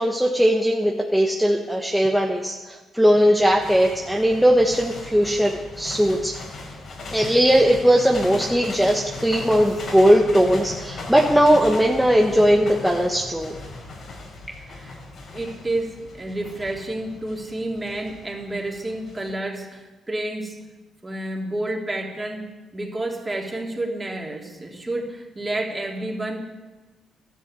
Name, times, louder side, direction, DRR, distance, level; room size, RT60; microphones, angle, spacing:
voice 1, 0.0-2.5 2.9-6.3 7.1-13.5, equal, ahead, -1 dB, 1.5 m, -19 dB
sound 1, 3.4-19.3, left 3 dB, 60° left, 4.4 m, -38 dB
voice 2, 14.6-15.0 15.3-20.6 21.0-22.5 22.7-26.5, right 1 dB, 20° right, 0 dB, 3.4 m, -30 dB
12.5 x 11.0 x 8.3 m, 1.2 s
cardioid pair, 75°, 0 cm